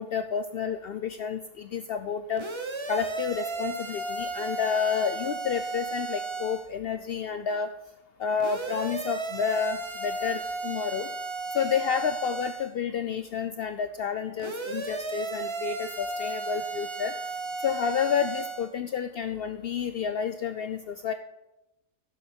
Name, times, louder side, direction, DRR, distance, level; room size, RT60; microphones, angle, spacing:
voice 1, 0.0-2.5 2.9-7.7 8.2-11.1 11.5-17.1 17.6-21.1, left 7 dB, 80° left, 9 dB, 0.5 m, -30 dB
sound 1, 2.4-6.7 8.4-12.7 14.4-18.7, right 3 dB, 30° right, 0.6 m, -34 dB
16.0 x 6.7 x 4.4 m, 0.96 s
omnidirectional pair, 1.6 m